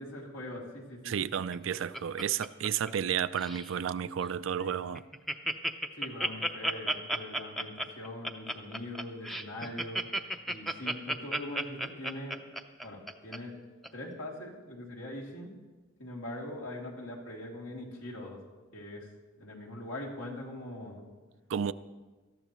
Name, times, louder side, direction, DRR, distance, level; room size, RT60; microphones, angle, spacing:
voice 1, 0.0-1.1 5.9-10.0 10.4-12.4 12.8-13.5 13.9-15.5 16.0-18.4 18.7-19.1 19.4-21.1, left 1 dB, 80° left, -2 dB, 2.9 m, -42 dB
voice 2, 1.0-5.0 21.5-21.7, right 8 dB, 70° right, 15 dB, 0.4 m, -32 dB
Laughter, 1.3-3.1 3.4-3.7 4.2-4.3 4.6-4.7 4.9-13.4 13.8-13.9, right 1 dB, ahead, 0.6 m, -33 dB
18.5 x 13.5 x 3.1 m, 1.3 s
head